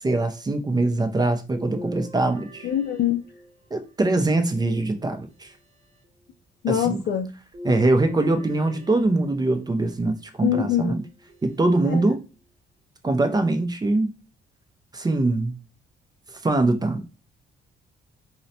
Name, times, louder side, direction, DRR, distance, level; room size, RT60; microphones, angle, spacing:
voice 1, 0.0-2.7 3.7-5.5 6.7-7.0 7.6-11.0 11.4-12.2 13.0-14.1 14.9-15.6 16.4-17.0, right 2 dB, 20° right, 0.5 m, -23 dB
sound 1, 1.5-3.8 4.5-5.5 7.5-9.6 10.5-11.4 12.0-12.1 13.5-13.6, equal, 35° right, 1.0 m, -41 dB
voice 2, 2.6-3.2 6.6-7.3 10.4-10.9 11.8-12.0, left 10 dB, 55° left, 0.4 m, -24 dB
3.9 x 2.1 x 2.7 m
cardioid pair, 90°, 20 cm